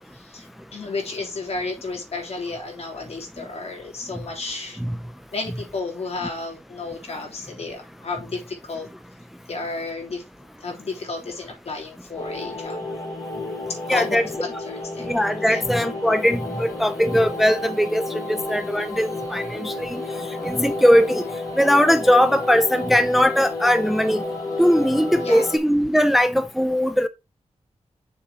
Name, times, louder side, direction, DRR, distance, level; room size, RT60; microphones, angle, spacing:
voice 1, 0.0-4.8 5.3-8.9 9.5-10.2 10.6-12.8 13.7-15.1 15.5-15.6 25.2-25.4, left 3 dB, 60° left, 3.2 m, -32 dB
sound 1, 12.2-25.6, left 2 dB, 30° left, 2.4 m, -31 dB
voice 2, 13.9-14.2 15.1-21.2 21.6-24.2 24.6-27.1, equal, ahead, 0.4 m, -20 dB
6.8 x 4.1 x 4.9 m
wide cardioid pair, 170°, 12 cm